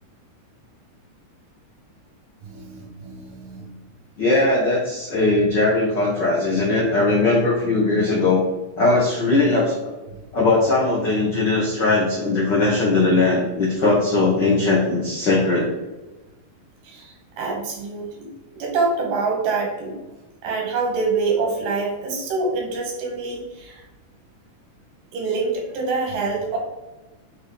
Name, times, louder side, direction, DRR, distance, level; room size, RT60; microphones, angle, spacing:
voice 1, 2.4-3.7 10.1-10.2 13.8-13.9 14.1-14.5 16.8-18.3 18.5-20.0 20.4-23.8 25.1-26.6, right 4 dB, 85° right, 0 dB, 2.9 m, -26 dB
voice 2, 4.2-8.4 8.8-9.7 10.3-15.7, left 2 dB, 75° left, -4 dB, 1.0 m, -19 dB
8.0 x 3.3 x 3.6 m, 1.1 s
omnidirectional pair, 3.8 m